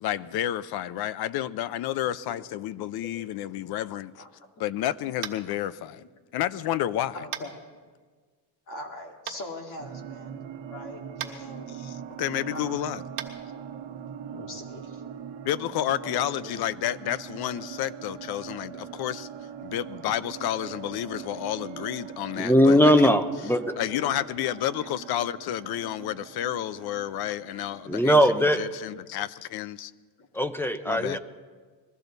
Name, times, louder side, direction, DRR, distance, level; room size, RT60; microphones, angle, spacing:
voice 1, 0.0-4.2 4.6-6.0 6.3-7.2 11.3-11.4 11.7-13.0 15.4-19.3 19.6-23.2 23.8-29.9 30.9-31.2, left 12 dB, 60° left, 0.6 m, -30 dB
Tap, 5.2-5.5 7.3-7.5 9.3-9.4 11.2-11.3 13.1-13.3, right 10 dB, 65° right, 1.4 m, -34 dB
voice 2, 7.1-7.6 8.7-10.4 10.7-11.7 12.5-12.9 14.3-15.0 16.1-16.5 22.7-22.8 24.1-24.2, left 2 dB, 45° left, 2.1 m, -41 dB
sound 1, 9.8-28.7, right 9 dB, 90° right, 1.1 m, -42 dB
voice 3, 22.3-23.7 27.9-28.6 30.3-31.2, equal, 5° left, 0.4 m, -20 dB
21.0 x 15.0 x 4.0 m
cardioid pair, 165°, 42 cm